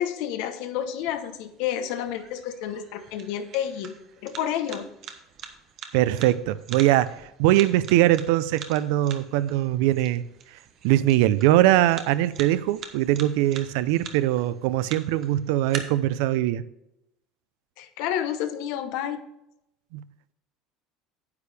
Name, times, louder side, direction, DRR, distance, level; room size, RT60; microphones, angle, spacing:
voice 1, 0.0-3.9 4.2-4.9 17.8-19.2, left 10 dB, 60° left, 8 dB, 1.0 m, -30 dB
sound 1, 0.8-15.8, right 8 dB, 35° right, 1.0 m, -44 dB
voice 2, 5.9-10.2 10.5-10.6 10.8-16.6 19.9-20.0, right 14 dB, 70° right, 15 dB, 0.5 m, -22 dB
9.5 x 8.5 x 3.4 m, 0.83 s
cardioid pair, 180°, 0 cm